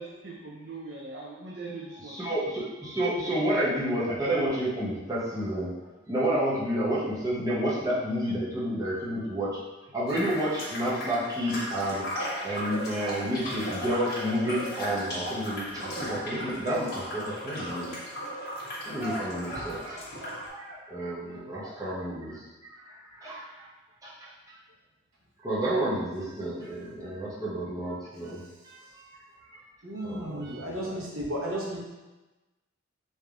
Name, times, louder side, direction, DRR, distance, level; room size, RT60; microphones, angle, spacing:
voice 1, 0.0-2.2, right 3 dB, 55° right, -5 dB, 0.5 m, -41 dB
voice 2, 2.0-5.7 6.1-9.6 9.9-17.9 18.9-23.7 24.0-24.3 25.4-28.4 28.6-29.2 30.0-30.7, right 1 dB, 15° right, -9 dB, 0.8 m, -30 dB
sound 1, 10.1-20.5, equal, 50° left, 0.9 m, -36 dB
voice 3, 29.8-31.8, equal, 85° right, -4 dB, 1.0 m, -34 dB
3.3 x 2.7 x 3.5 m, 1.1 s
head